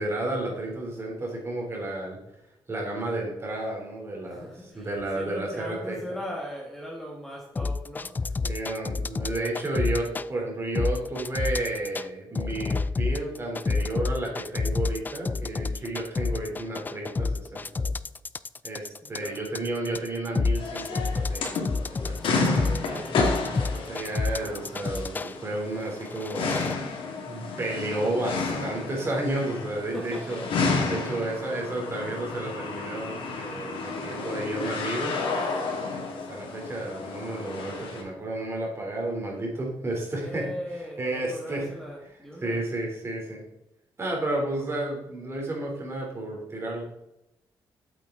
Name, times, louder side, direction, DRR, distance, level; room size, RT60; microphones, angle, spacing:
voice 1, 0.0-2.2 2.7-4.5 4.7-6.0 8.4-17.8 18.6-22.6 23.6-26.5 27.3-30.4 30.8-35.2 35.9-40.5 41.0-41.7 42.4-43.4 44.0-46.8, right 2 dB, 30° right, -1 dB, 3.5 m, -32 dB
voice 2, 4.2-8.4 19.0-19.4 22.4-23.2 29.7-30.8 40.2-42.7, equal, 5° left, -2 dB, 1.8 m, -39 dB
sound 1, 7.6-10.3 10.8-12.1 12.4-25.3 25.9-26.8, left 3 dB, 20° left, 0.3 m, -28 dB
sound 2, 20.6-38.0, left 4 dB, 85° left, 2.2 m, -31 dB
8.4 x 8.2 x 3.9 m, 0.86 s
cardioid pair, 115°, 9 cm